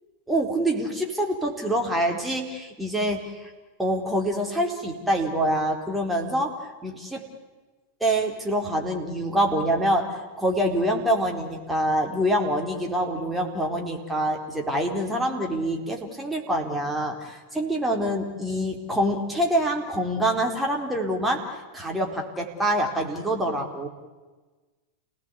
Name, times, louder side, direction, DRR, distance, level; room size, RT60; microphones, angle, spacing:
voice 1, 0.3-3.5 3.8-7.2 8.0-23.9, right 1 dB, 5° right, 1 dB, 4.2 m, -26 dB
29.5 x 18.5 x 8.4 m, 1.3 s
figure-of-eight pair, 90°, 0 cm